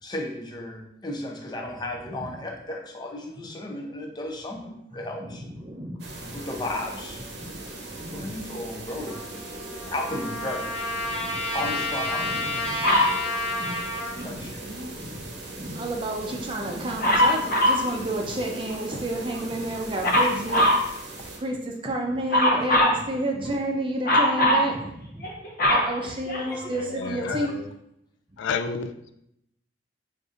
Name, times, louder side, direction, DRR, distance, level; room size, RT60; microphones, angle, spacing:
voice 1, 0.0-5.4 6.3-7.2 8.1-9.2 9.9-10.7 11.5-12.6 13.1-13.2 14.2-14.6 20.2-20.3 21.2-21.3 26.5-26.7, left 1 dB, 25° left, 0.5 m, -34 dB
voice 2, 5.2-6.4 7.4-7.5 7.9-8.3 11.0-11.7 12.2-13.1 13.4-13.8 14.1-25.3 25.6-27.5, right 1 dB, 30° right, 0.6 m, -31 dB
sound 1, 6.0-21.4, right 2 dB, 70° right, 0.8 m, -40 dB
Trumpet, 9.0-14.2, left 1 dB, 5° left, 1.4 m, -30 dB
Dog, 12.8-13.2 17.0-17.9 20.0-20.9 22.3-23.0 24.0-24.7 25.2-26.7 27.5-27.6, left 1 dB, 50° left, 0.8 m, -21 dB
voice 3, 26.7-27.6 28.4-29.1, left 5 dB, 80° left, 0.3 m, -31 dB
6.5 x 2.6 x 2.4 m
head